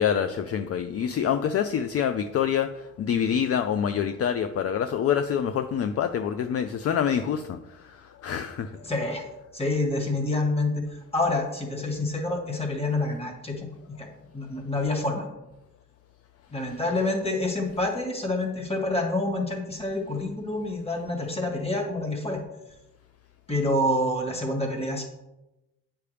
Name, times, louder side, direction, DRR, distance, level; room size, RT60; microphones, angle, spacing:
voice 1, 0.0-2.7 3.0-7.6 8.2-8.7, left 8 dB, 50° left, 9 dB, 0.5 m, -26 dB
voice 2, 8.8-9.3 9.5-15.3 16.5-22.4 23.5-25.0, left 2 dB, 20° left, 2 dB, 1.8 m, -27 dB
8.5 x 5.8 x 3.4 m, 0.97 s
cardioid pair, 90°, 30 cm